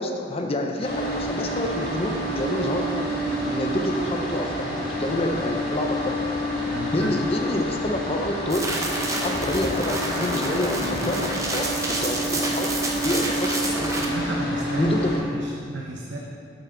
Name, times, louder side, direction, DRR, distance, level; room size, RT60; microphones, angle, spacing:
voice 1, 0.0-6.2 6.9-8.8 9.2-14.1 14.8-15.2, left 1 dB, 30° left, 3 dB, 0.6 m, -28 dB
sound 1, 0.8-15.2, equal, 50° left, 2.2 m, -28 dB
voice 2, 6.7-7.1 14.0-15.0 15.3-16.2, right 1 dB, 80° right, -1 dB, 0.8 m, -31 dB
sound 2, 8.5-14.0, right 2 dB, 15° right, 0.8 m, -29 dB
7.9 x 7.8 x 3.9 m, 2.4 s
head